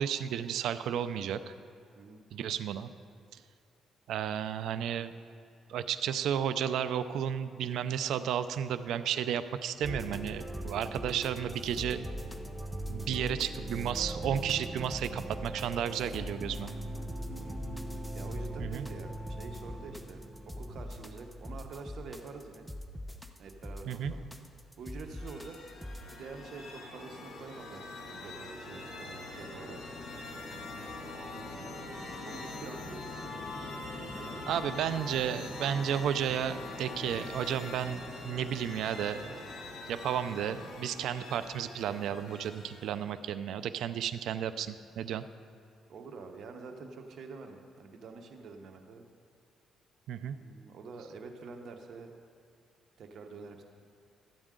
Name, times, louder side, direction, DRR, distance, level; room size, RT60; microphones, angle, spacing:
voice 1, 0.0-1.4 2.3-2.9 4.1-5.1 5.7-12.0 12.8-16.7 18.6-18.9 23.9-24.1 34.5-39.3 39.9-45.2 50.1-50.4, right 9 dB, 80° right, 12 dB, 0.4 m, -33 dB
sound 1, 9.8-26.2, equal, ahead, 0.7 m, -40 dB
voice 2, 17.9-20.2 20.6-22.7 23.4-24.2 24.8-25.6 26.1-29.8 31.3-33.5 34.0-34.5 45.9-49.0 50.3-52.1 53.0-53.6, right 4 dB, 65° right, 4 dB, 1.0 m, -47 dB
sound 2, 24.9-43.1, left 2 dB, 65° left, 2.3 m, -43 dB
13.0 x 8.8 x 3.7 m, 2.3 s
cardioid pair, 90°, 0 cm